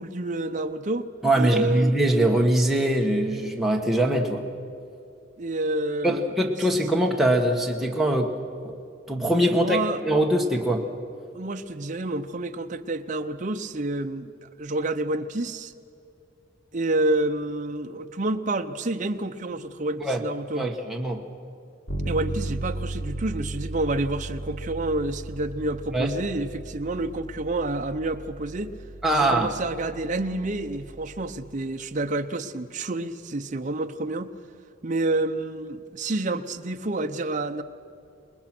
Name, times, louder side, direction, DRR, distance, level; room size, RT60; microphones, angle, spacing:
voice 1, 0.0-1.1 1.3-1.9 5.4-6.3 9.5-10.0 11.3-15.7 16.7-20.7 22.0-28.8 29.1-34.3 34.8-37.6, right 2 dB, 40° right, 6 dB, 0.7 m, -29 dB
voice 2, 1.2-4.4 6.0-8.3 8.6-8.8 9.1-9.8 10.0-10.8 20.0-20.2 20.5-21.2 25.9-26.1 29.0-29.5, right 1 dB, ahead, -1 dB, 1.4 m, -22 dB
Bass guitar, 21.9-31.6, right 1 dB, 75° left, 3.4 m, -36 dB
29.0 x 20.0 x 6.1 m, 2.6 s
head